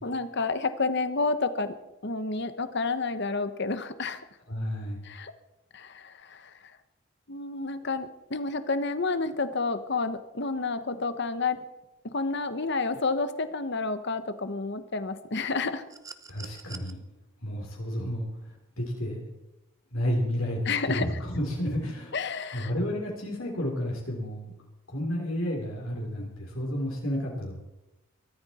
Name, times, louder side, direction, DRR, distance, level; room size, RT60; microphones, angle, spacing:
voice 1, 0.0-1.8 2.0-4.2 5.0-5.3 5.7-6.5 7.3-11.6 12.0-15.8 20.7-21.1 22.1-22.7, left 3 dB, 50° left, 11 dB, 1.1 m, -30 dB
voice 2, 4.5-5.0 16.3-17.0 17.4-18.3 18.8-19.2 19.9-22.1 22.5-24.5 24.9-27.5, equal, 70° left, -1 dB, 3.4 m, -31 dB
sound 1, 15.9-16.9 18.4-18.6, right 5 dB, 15° right, 0.7 m, -45 dB
22.5 x 14.0 x 4.3 m, 0.96 s
head